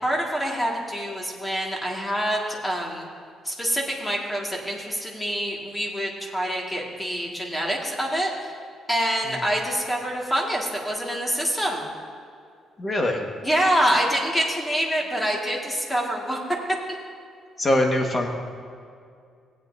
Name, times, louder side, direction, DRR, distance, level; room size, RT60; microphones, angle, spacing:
voice 1, 0.0-3.1 3.4-8.3 8.9-11.8 13.4-16.4, equal, 10° left, -1 dB, 1.9 m, -26 dB
voice 2, 12.8-13.2 17.6-18.3, left 1 dB, 30° left, 2 dB, 1.5 m, -23 dB
17.0 x 8.5 x 2.7 m, 2.3 s
cardioid pair, 90°, 0 cm